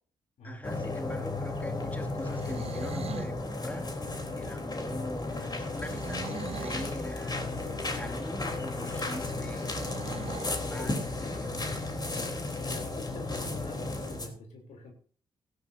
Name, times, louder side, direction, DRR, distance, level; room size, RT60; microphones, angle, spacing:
voice 1, 0.4-3.9 4.3-9.7 10.7-11.7 12.1-12.4, left 1 dB, 15° left, 2 dB, 2.3 m, -43 dB
sound 1, 0.6-14.3, left 2 dB, 35° left, 3.4 m, -34 dB
sound 2, 2.1-3.4 5.7-7.0 9.5-10.6, right 6 dB, 55° right, 1.0 m, -41 dB
voice 2, 10.6-11.1 12.4-14.9, left 2 dB, 75° left, 3 dB, 3.3 m, -45 dB
17.0 x 13.5 x 2.7 m, 0.43 s
hypercardioid pair, 45°, 12 cm